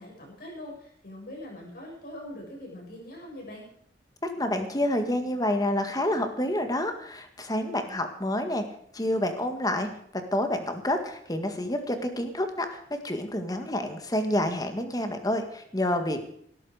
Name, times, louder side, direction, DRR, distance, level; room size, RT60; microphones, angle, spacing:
voice 1, 0.0-3.7, left 1 dB, 55° left, -2 dB, 7.4 m, -42 dB
voice 2, 4.2-8.6 8.9-16.2, left 1 dB, 20° left, 7 dB, 1.8 m, -28 dB
18.5 x 13.0 x 4.9 m, 0.66 s
head